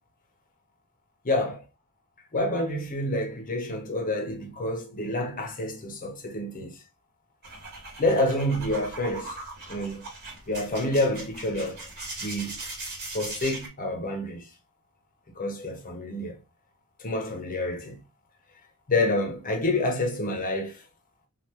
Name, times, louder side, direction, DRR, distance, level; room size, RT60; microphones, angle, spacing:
voice 1, 1.2-1.6 2.3-6.7 8.0-9.3 9.7-10.1 10.5-11.8 12.2-12.6 13.1-14.4 15.4-16.4 17.0-18.0 18.9-20.8, left 1 dB, 40° left, 0.9 m, -28 dB
sound 1, 7.4-13.7, right 2 dB, 50° right, 1.4 m, -39 dB
3.4 x 2.5 x 2.8 m
head